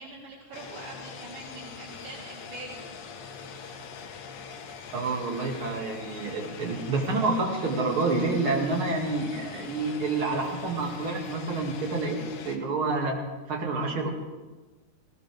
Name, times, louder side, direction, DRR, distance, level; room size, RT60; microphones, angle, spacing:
voice 1, 0.0-2.8 9.8-10.1, right 2 dB, 80° right, -4 dB, 4.8 m, -44 dB
sound 1, 0.5-12.6, left 5 dB, 80° left, 2.6 m, -42 dB
voice 2, 4.9-12.2 12.4-13.2 13.5-14.1, right 3 dB, 45° right, 0 dB, 2.8 m, -28 dB
20.0 x 17.5 x 3.4 m, 1.3 s
omnidirectional pair, 3.6 m